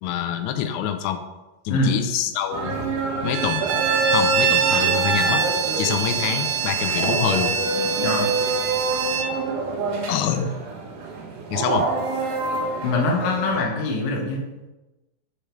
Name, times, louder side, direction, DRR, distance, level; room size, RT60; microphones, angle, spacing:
voice 1, 0.0-1.2 1.7-2.9 3.2-3.7 4.1-5.4 5.8-7.5 10.1-10.5 11.5-11.9, left 9 dB, 85° left, 9 dB, 2.7 m, -26 dB
sound 1, 2.5-13.6, right 3 dB, 60° right, 2.3 m, -27 dB
Bowed string instrument, 3.3-9.3, right 7 dB, 85° right, 2.6 m, -24 dB
voice 2, 12.8-14.4, left 2 dB, 65° left, 0 dB, 1.9 m, -23 dB
6.4 x 5.1 x 4.4 m, 1.1 s
omnidirectional pair, 4.6 m